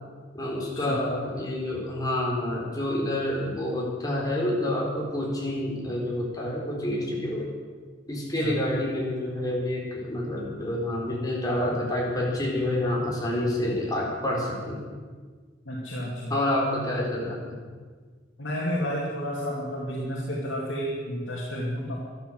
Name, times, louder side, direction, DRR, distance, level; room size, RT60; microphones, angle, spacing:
voice 1, 0.3-7.5 8.1-14.8 16.3-17.6, left 1 dB, 20° left, -3 dB, 3.8 m, -28 dB
voice 2, 15.7-16.3 18.4-22.0, equal, 75° left, -4 dB, 2.6 m, -31 dB
12.5 x 12.0 x 7.9 m, 1.5 s
head